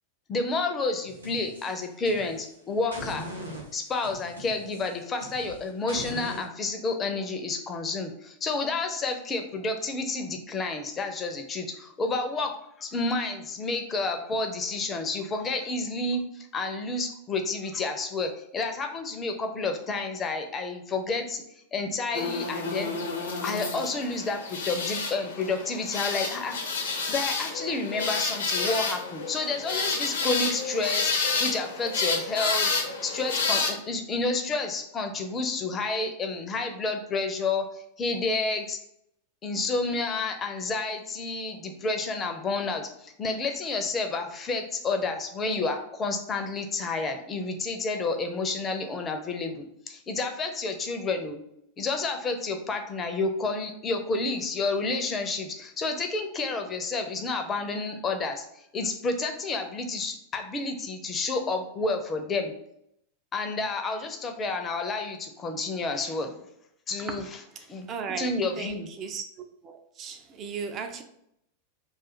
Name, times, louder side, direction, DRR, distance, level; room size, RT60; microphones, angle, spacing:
voice 1, 0.3-3.3 3.7-12.5 12.8-21.4 21.7-23.0 23.4-26.6 27.1-31.1 31.4-38.8 39.4-51.4 51.8-62.5 63.3-66.4 66.9-67.3 67.7-67.9 68.2-68.9, left 3 dB, 20° left, 0.5 m, -30 dB
sound 1, 1.1-2.5 2.9-6.5, equal, 85° right, 0.7 m, -41 dB
sound 2, 22.1-33.7, left 4 dB, 65° left, 0.6 m, -30 dB
voice 2, 67.9-68.3 68.6-69.2 69.6-71.0, right 6 dB, 30° right, 0.4 m, -36 dB
2.5 x 2.4 x 4.1 m
figure-of-eight pair, 90°, 0 cm